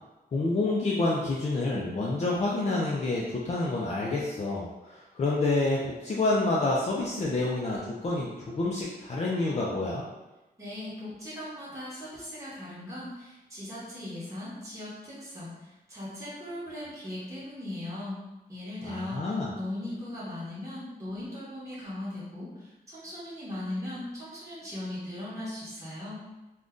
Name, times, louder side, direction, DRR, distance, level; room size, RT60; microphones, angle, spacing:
voice 1, 0.3-10.0 18.8-19.5, left 2 dB, 45° left, -5 dB, 0.4 m, -28 dB
voice 2, 10.6-15.5 15.9-18.2 18.5-26.2, left 1 dB, 20° right, -10 dB, 1.0 m, -38 dB
2.5 x 2.2 x 3.6 m, 1.0 s
wide cardioid pair, 135°, 16 cm